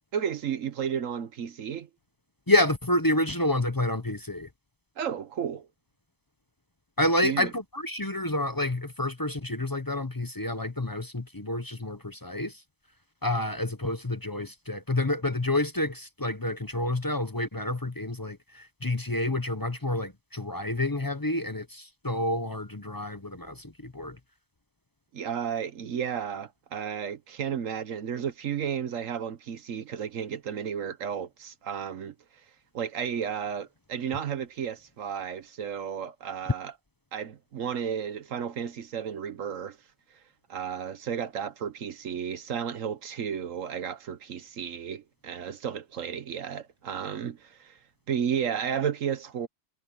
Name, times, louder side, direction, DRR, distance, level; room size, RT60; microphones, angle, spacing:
voice 1, 0.1-1.9 5.0-5.7 7.2-7.5 25.1-32.1 32.7-36.7 37.1-39.8 40.5-47.8 48.1-49.5, right 8 dB, 70° right, 1.3 m, -33 dB
voice 2, 2.5-4.5 7.0-12.6 13.2-24.2, left 1 dB, 20° left, 0.7 m, -29 dB
omnidirectional pair, 1.4 m